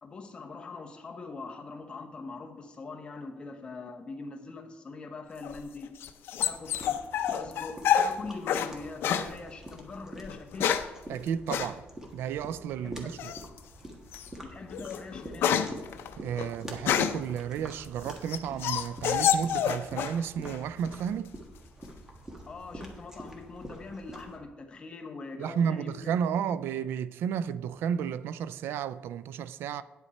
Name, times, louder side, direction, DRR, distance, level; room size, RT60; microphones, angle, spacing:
voice 1, 0.0-5.9 6.4-7.0 7.3-10.8 12.8-13.2 14.4-15.8 22.5-26.1, left 3 dB, 25° left, 1.0 m, -43 dB
sound 1, 5.4-8.7 9.0-9.3 10.2-11.0 11.5-11.7 13.2-13.6 14.1-14.3 14.7-17.3 17.8-20.2 20.5-21.1, left 9 dB, 80° left, 0.6 m, -28 dB
sound 2, 6.4-24.4, right 1 dB, 15° right, 1.4 m, -47 dB
voice 2, 11.1-11.8 12.1-13.3 16.2-21.3 25.4-29.8, right 8 dB, 85° right, 0.4 m, -32 dB
9.6 x 8.0 x 4.2 m
cardioid pair, 165°, 4 cm